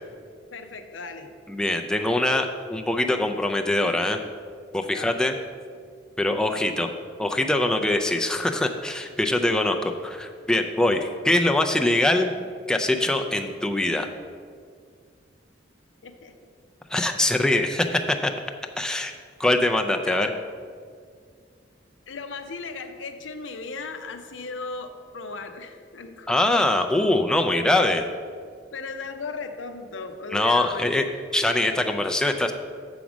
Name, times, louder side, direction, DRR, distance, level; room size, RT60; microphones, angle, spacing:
voice 1, 0.5-1.4 4.9-5.1 6.5-6.7 16.0-16.3 20.0-20.3 22.1-26.4 28.7-31.0, left 4 dB, 85° left, 7 dB, 0.7 m, -36 dB
voice 2, 1.5-4.2 4.7-5.3 6.2-6.9 7.2-12.3 12.7-14.1 16.9-18.3 18.8-19.1 19.4-20.3 26.3-28.1 30.3-31.1 31.3-32.5, left 1 dB, 5° left, 4 dB, 0.3 m, -23 dB
7.1 x 5.1 x 6.1 m, 2.1 s
head